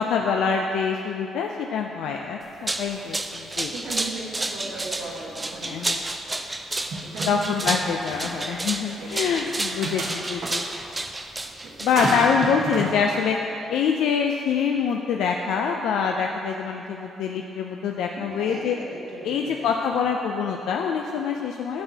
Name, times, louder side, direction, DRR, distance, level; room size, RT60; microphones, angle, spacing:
voice 1, 0.0-3.7 5.6-6.0 7.3-10.6 11.8-13.4 13.7-18.8 19.2-21.8, left 6 dB, 85° left, 2 dB, 0.3 m, -25 dB
sound 1, 2.4-12.3, right 2 dB, 20° right, 0.4 m, -31 dB
voice 2, 3.6-6.0 7.1-7.6 8.4-8.5 8.8-9.5 9.9-10.5 11.5-12.0 18.2-20.0, right 3 dB, 90° right, -4 dB, 1.3 m, -39 dB
sound 2, 6.9-7.9 8.2-8.4 9.4-10.5 11.9-13.0, right 2 dB, 60° right, 1.0 m, -31 dB
9.4 x 6.0 x 2.7 m, 2.9 s
cardioid pair, 90°, 0 cm